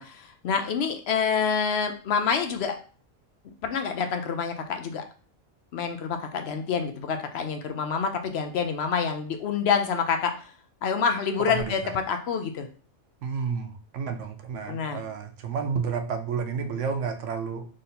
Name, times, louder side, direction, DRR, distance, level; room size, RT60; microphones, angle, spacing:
voice 1, 0.0-2.8 3.6-5.0 5.7-10.5 10.8-12.7 14.7-15.0, left 6 dB, 65° left, 6 dB, 0.8 m, -27 dB
voice 2, 13.2-17.7, right 6 dB, 85° right, 7 dB, 1.0 m, -31 dB
3.8 x 2.6 x 4.1 m, 0.41 s
omnidirectional pair, 1.2 m